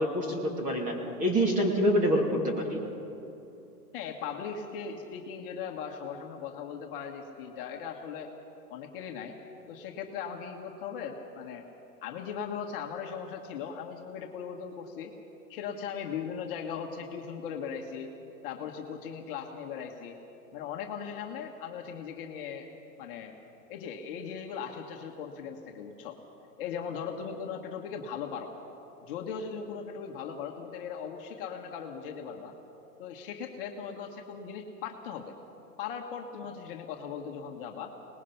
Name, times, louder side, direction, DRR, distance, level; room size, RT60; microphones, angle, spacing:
voice 1, 0.0-2.8, equal, 15° right, 1 dB, 2.6 m, -26 dB
voice 2, 3.9-8.3 8.7-9.4 9.7-11.6 12.0-15.1 15.5-18.1 18.4-20.2 20.5-22.7 23.0-23.3 23.7-26.2 26.6-28.5 29.0-32.5 33.0-35.3 35.8-37.9, left 7 dB, 35° left, 1 dB, 1.6 m, -38 dB
24.5 x 20.0 x 5.8 m, 2.9 s
hypercardioid pair, 155°, 47 cm